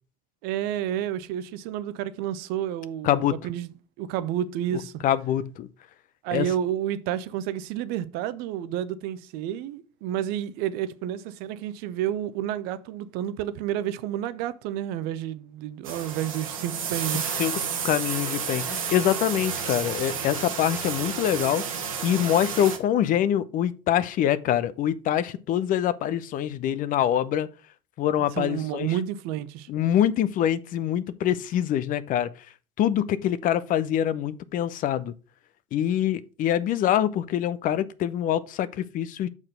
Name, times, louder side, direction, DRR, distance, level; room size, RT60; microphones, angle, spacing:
voice 1, 0.4-4.9 6.2-17.2 28.3-29.7, right 11 dB, 65° right, 0.7 m, -30 dB
voice 2, 3.0-3.4 5.0-5.7 6.3-6.5 17.4-21.6 22.0-27.5 28.0-28.9 29.7-32.3 32.8-35.1 35.7-39.3, left 10 dB, 50° left, 0.7 m, -25 dB
sound 1, 15.8-22.8, right 7 dB, 90° right, 1.2 m, -31 dB
6.0 x 4.5 x 6.4 m
hypercardioid pair, 70°, 17 cm